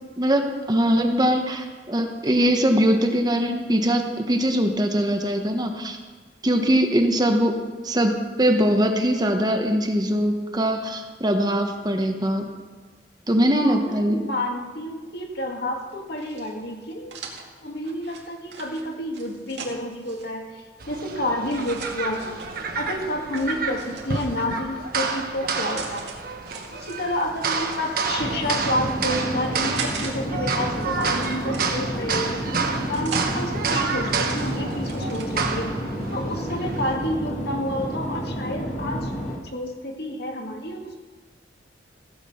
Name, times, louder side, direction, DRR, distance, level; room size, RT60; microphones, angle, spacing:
voice 1, 0.2-6.0 6.4-7.6 7.8-12.5 13.3-14.2, equal, 25° right, 4 dB, 1.1 m, -22 dB
voice 2, 13.5-17.1 17.6-22.4 22.7-26.0 26.7-32.4 32.9-35.7 36.1-41.0, left 1 dB, 65° left, 2 dB, 1.9 m, -30 dB
sound 1, 16.2-20.3 21.4-22.5 23.3-24.6 25.3-26.1 26.5-28.0 28.6-30.1 30.4-32.0 32.5-33.3 33.8-35.5, right 5 dB, 75° right, 2.4 m, -39 dB
sound 2, 20.8-36.9, right 4 dB, 55° right, 1.3 m, -29 dB
sound 3, 28.2-39.4, equal, 40° left, 1.8 m, -30 dB
15.5 x 8.4 x 5.7 m, 1.4 s
head